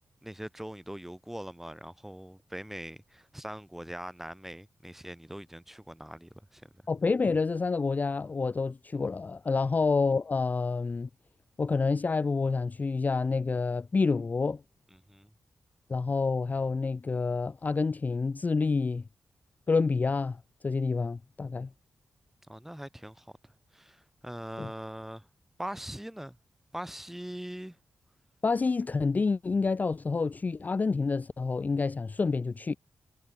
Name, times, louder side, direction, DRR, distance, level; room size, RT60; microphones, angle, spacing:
voice 1, 0.2-6.7 14.9-15.3 22.5-25.3 25.6-26.4 26.7-27.8, equal, 5° right, 1.4 m, -42 dB
voice 2, 6.9-11.1 11.6-14.6 15.9-19.0 19.7-21.7 24.6-24.7 28.4-32.7, left 4 dB, 35° left, 0.3 m, -28 dB
cardioid pair, 70°, 5 cm